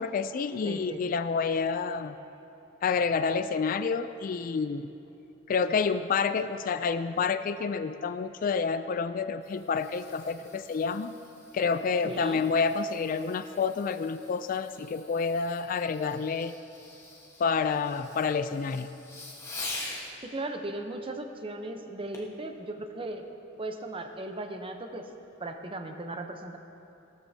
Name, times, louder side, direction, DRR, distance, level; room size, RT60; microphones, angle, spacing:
voice 1, 0.0-2.2 2.8-4.9 5.5-11.1 11.5-16.6 17.4-18.9, left 5 dB, 45° left, 11 dB, 0.3 m, -29 dB
voice 2, 0.6-1.0 12.0-12.4 20.2-23.2 23.6-25.1 25.4-26.6, right 2 dB, 25° right, 5 dB, 0.7 m, -37 dB
Fireworks, 9.1-20.1 22.1-22.4 23.0-23.1, left 2 dB, 15° left, 1.3 m, -45 dB
16.5 x 13.0 x 2.8 m, 2.9 s
head